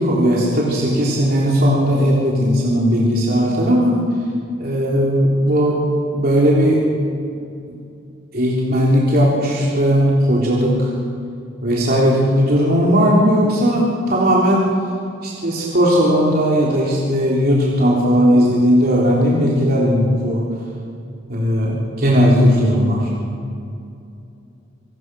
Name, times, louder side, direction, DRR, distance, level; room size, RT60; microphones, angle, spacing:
voice 1, 0.0-4.0 4.6-5.8 6.1-6.8 8.3-10.9 11.6-14.6 15.2-20.4 21.3-23.0, equal, 50° right, -4 dB, 3.6 m, -16 dB
27.0 x 18.0 x 6.3 m, 2.6 s
head